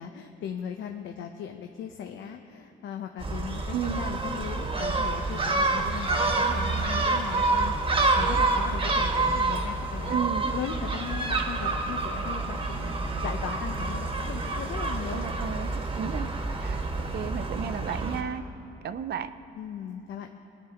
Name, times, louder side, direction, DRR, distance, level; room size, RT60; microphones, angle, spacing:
voice 1, 0.0-10.3 10.5-15.5 19.5-20.3, left 8 dB, 75° left, 4 dB, 0.7 m, -38 dB
Gull seagull, 3.2-18.2, right 3 dB, 25° right, 1.3 m, -28 dB
voice 2, 10.1-10.5 15.1-16.3 16.6-16.8 17.1-18.4 18.8-19.3, right 8 dB, 55° right, 12 dB, 0.6 m, -33 dB
19.5 x 9.5 x 3.5 m, 3.0 s
cardioid pair, 90°, 20 cm